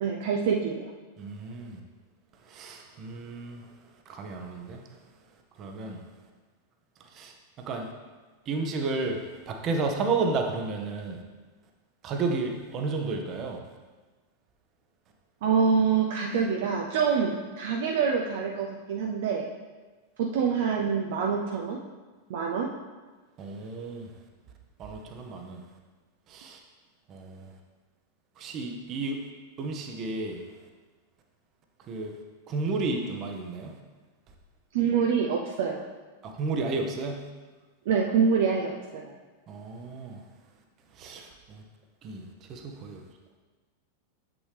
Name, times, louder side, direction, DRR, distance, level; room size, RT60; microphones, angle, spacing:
voice 1, 0.0-0.9 15.4-19.5 20.2-21.8 22.3-22.7 34.7-35.8 37.9-39.1, right 6 dB, 55° right, 0 dB, 0.6 m, -26 dB
voice 2, 1.2-1.8 2.5-3.6 4.1-4.8 5.6-6.0 7.1-7.9 8.5-9.2 9.5-11.2 12.0-13.6 23.4-24.1 24.8-25.6 26.3-26.6 27.1-27.5 28.4-29.2 29.6-30.4 31.9-32.1 32.5-33.7 36.2-37.2 39.5-40.2 41.0-41.6 42.0-43.0, right 3 dB, 35° right, 3 dB, 1.0 m, -32 dB
7.8 x 6.1 x 3.4 m, 1.3 s
figure-of-eight pair, 90°, 0 cm